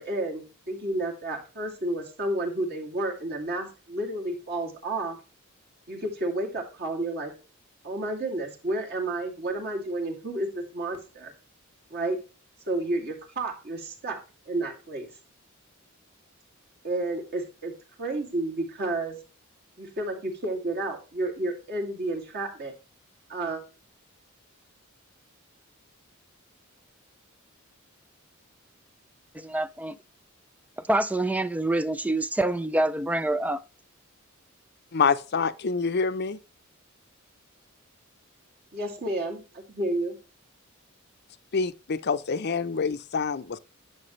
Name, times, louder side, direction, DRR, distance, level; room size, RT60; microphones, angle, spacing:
voice 1, 0.0-5.2 5.9-7.3 7.8-11.3 11.9-12.2 12.7-14.2 14.5-15.1 16.8-17.7 18.0-19.2 19.8-22.7 23.3-23.6 38.7-40.2, right 2 dB, 50° right, 2.6 m, -31 dB
voice 2, 29.3-30.0 30.8-33.6, right 1 dB, 5° right, 0.3 m, -26 dB
voice 3, 34.9-36.4 41.5-43.6, left 5 dB, 50° left, 0.6 m, -26 dB
11.0 x 6.3 x 3.2 m
head